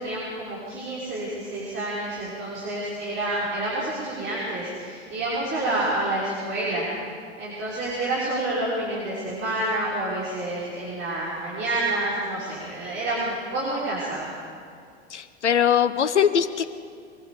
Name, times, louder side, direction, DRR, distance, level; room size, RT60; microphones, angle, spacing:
voice 1, 0.0-6.9 7.4-14.3, right 1 dB, 35° right, -7 dB, 6.1 m, -28 dB
voice 2, 15.1-16.7, left 8 dB, 80° left, 11 dB, 1.0 m, -21 dB
24.0 x 22.5 x 5.3 m, 2.3 s
figure-of-eight pair, 95°, 34 cm